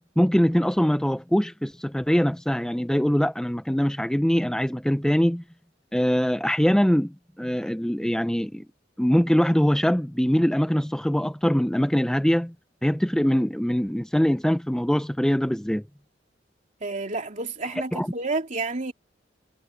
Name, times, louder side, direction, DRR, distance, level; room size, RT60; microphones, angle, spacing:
voice 1, 0.0-5.4 5.9-8.6 9.0-12.5 12.8-15.8 17.9-18.1, equal, 5° left, 0.6 m, -23 dB
voice 2, 16.8-18.9, right 3 dB, 45° right, 3.1 m, -30 dB
head